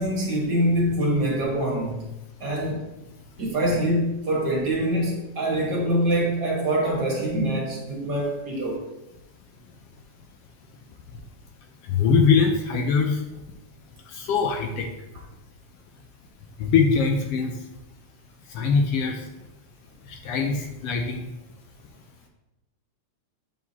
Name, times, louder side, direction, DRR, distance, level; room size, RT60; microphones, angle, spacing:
voice 1, 0.0-2.1 2.4-2.9 3.4-8.9, right 1 dB, 40° right, -3 dB, 1.8 m, -24 dB
voice 2, 11.9-13.2 14.1-14.9 16.6-17.5 18.5-19.2 20.2-21.2, left 5 dB, 75° left, 3 dB, 1.4 m, -22 dB
7.9 x 7.2 x 2.8 m, 0.98 s
omnidirectional pair, 3.4 m